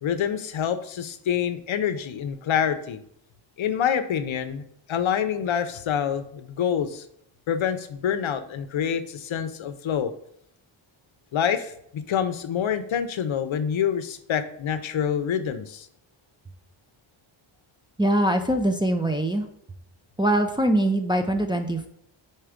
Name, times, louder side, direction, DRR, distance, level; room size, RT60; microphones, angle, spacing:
voice 1, 0.0-3.0 3.6-7.1 7.5-10.1 11.3-15.9, left 8 dB, 70° left, 10 dB, 0.7 m, -26 dB
voice 2, 18.0-19.5 20.2-21.9, right 1 dB, 10° right, 3 dB, 0.4 m, -23 dB
4.6 x 4.3 x 5.0 m, 0.71 s
wide cardioid pair, 105°, 49 cm